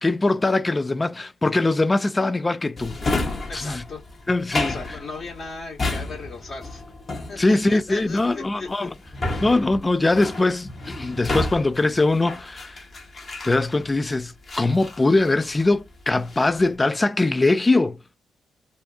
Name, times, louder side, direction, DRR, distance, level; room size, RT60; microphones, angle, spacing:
voice 1, 0.0-3.0 3.5-3.8 4.3-4.8 7.4-8.9 9.4-12.9 13.4-18.0, left 2 dB, 25° left, 0.3 m, -22 dB
Drawer open or close, 2.8-14.0 14.5-15.8 16.1-16.6, left 2 dB, 40° left, 0.9 m, -31 dB
voice 2, 3.5-4.0 4.6-6.8 7.3-8.9, left 3 dB, 55° left, 1.1 m, -37 dB
2.6 x 2.4 x 2.3 m
supercardioid pair, 60°, 0 cm